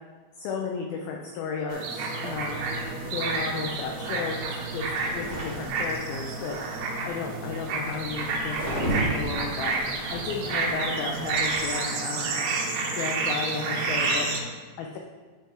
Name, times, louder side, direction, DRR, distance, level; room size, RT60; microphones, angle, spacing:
voice 1, 0.4-2.6 3.1-4.4 4.7-4.8 5.1-6.6 7.1-12.4 13.0-14.3 14.8-15.0, left 5 dB, 85° left, 0 dB, 2.1 m, -34 dB
sound 1, 1.7-14.4, right 3 dB, 80° right, 3.2 m, -30 dB
sound 2, 2.2-11.7, right 1 dB, 10° left, 1.1 m, -37 dB
11.5 x 4.3 x 3.6 m, 1.4 s
omnidirectional pair, 5.1 m